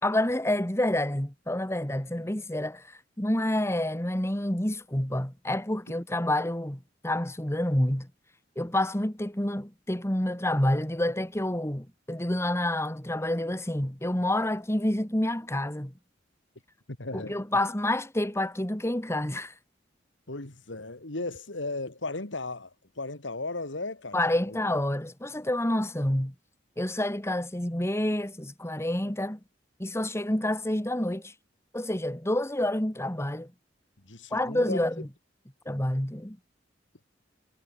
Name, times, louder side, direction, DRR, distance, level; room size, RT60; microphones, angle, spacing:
voice 1, 0.0-8.1 8.6-15.9 17.1-19.5 24.1-26.3 26.8-29.4 29.8-31.3 31.7-33.5 34.3-35.1 35.7-36.4, left 1 dB, 15° left, 2.2 m, -28 dB
voice 2, 16.9-17.4 20.3-24.2 34.0-34.8, left 2 dB, 85° left, 2.7 m, -36 dB
head